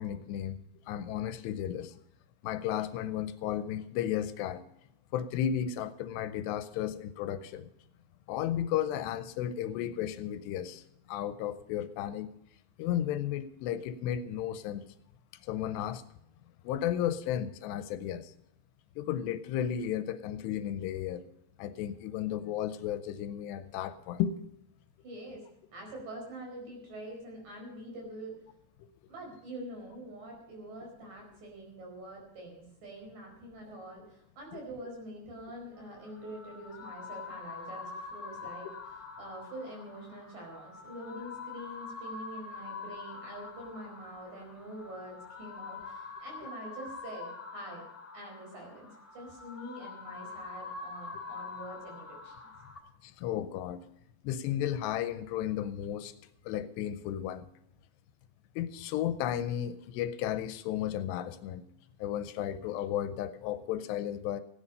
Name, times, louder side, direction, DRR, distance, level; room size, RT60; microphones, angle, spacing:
voice 1, 0.0-2.0 2.4-4.6 5.1-7.7 8.3-12.3 12.8-14.9 15.4-16.0 16.6-18.3 19.0-21.2 21.6-24.5 28.8-28.9 34.5-34.6 53.0-53.9 54.2-56.1 56.5-57.5 58.6-61.7 62.0-64.4, left 10 dB, 85° left, 11 dB, 2.7 m, -34 dB
voice 2, 25.0-28.4 29.1-38.7 39.2-47.8 48.1-52.3, right 1 dB, 50° right, 1 dB, 6.2 m, -45 dB
sound 1, 35.8-52.8, left 4 dB, 25° left, 1.3 m, -45 dB
15.5 x 10.0 x 5.4 m, 0.80 s
omnidirectional pair, 5.0 m